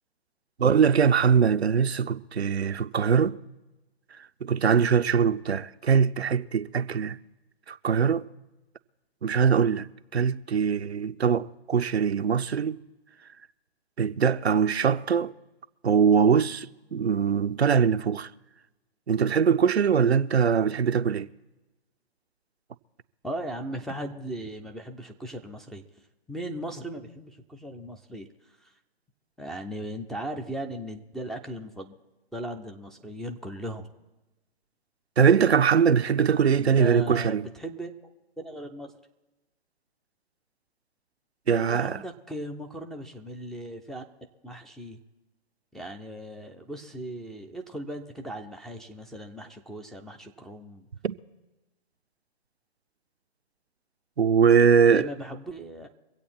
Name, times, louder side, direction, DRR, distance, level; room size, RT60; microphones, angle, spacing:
voice 1, 0.6-3.4 4.4-7.2 7.7-8.3 9.2-9.9 10.1-12.8 14.0-15.3 15.8-18.3 19.1-21.3 35.2-37.5 41.5-42.0 51.0-51.2 54.2-55.1, right 6 dB, 90° right, 0.6 m, -22 dB
voice 2, 23.2-28.8 29.4-31.9 32.3-33.9 36.5-37.9 38.4-38.9 41.5-44.0 44.4-45.0 45.7-50.9 54.8-55.9, right 1 dB, ahead, 0.4 m, -38 dB
24.5 x 8.3 x 4.3 m
figure-of-eight pair, 125°, 31 cm